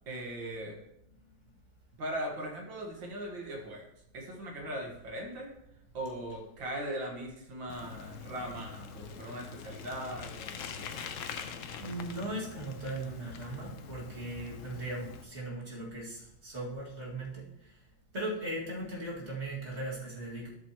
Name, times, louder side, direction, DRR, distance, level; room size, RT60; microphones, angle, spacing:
voice 1, 0.1-0.8 2.0-3.9 4.1-5.5 5.9-11.0, right 1 dB, 65° right, 1 dB, 2.3 m, -39 dB
Bicycle, 7.7-15.2, left 6 dB, 80° left, 0.7 m, -44 dB
voice 2, 11.4-17.8 18.1-20.5, right 1 dB, 30° right, -4 dB, 2.4 m, -38 dB
12.0 x 7.7 x 3.0 m, 0.81 s
omnidirectional pair, 2.3 m